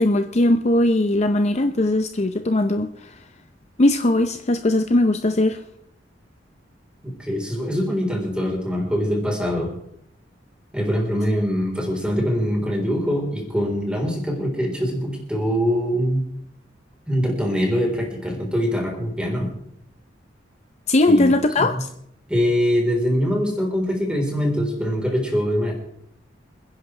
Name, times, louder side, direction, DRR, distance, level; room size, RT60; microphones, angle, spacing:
voice 1, 0.0-2.9 3.8-5.6 20.9-21.7, left 1 dB, 40° left, 8 dB, 0.6 m, -19 dB
voice 2, 7.2-9.7 10.7-16.2 17.1-19.5 21.1-21.3 21.6-21.8 22.3-25.7, equal, 5° right, 0 dB, 4.0 m, -23 dB
27.5 x 10.5 x 3.3 m, 0.72 s
head